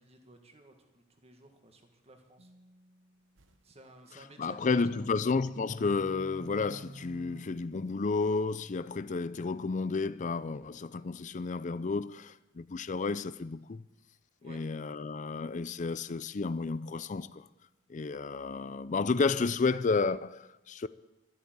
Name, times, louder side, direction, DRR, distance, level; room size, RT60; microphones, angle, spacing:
voice 1, 0.0-2.5 3.6-5.1 14.4-14.6, right 1 dB, 30° right, 1.8 m, -55 dB
sound 1, 2.4-3.6 4.9-7.4, right 1 dB, 70° right, 1.1 m, -50 dB
voice 2, 4.4-13.8 14.4-17.5 17.9-20.9, left 4 dB, 40° left, 0.5 m, -31 dB
13.0 x 8.4 x 9.5 m
head